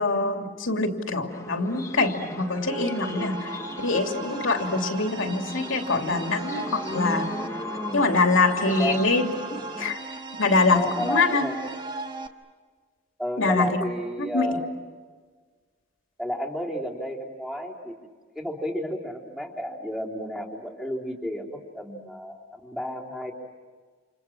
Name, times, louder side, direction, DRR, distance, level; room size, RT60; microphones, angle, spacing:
voice 1, 0.0-7.3 7.9-9.3 9.8-10.0 10.4-11.5 13.4-13.8 14.2-14.5, left 3 dB, 75° left, 3 dB, 3.0 m, -24 dB
sound 1, 1.3-10.0, left 1 dB, 15° left, 1.1 m, -37 dB
sound 2, 2.7-12.3, right 3 dB, 20° right, 1.4 m, -37 dB
voice 2, 8.6-9.1 10.7-11.6 13.2-14.7 16.2-18.0 18.4-23.3, equal, ahead, 0 dB, 3.6 m, -32 dB
30.0 x 28.5 x 6.2 m, 1.5 s
head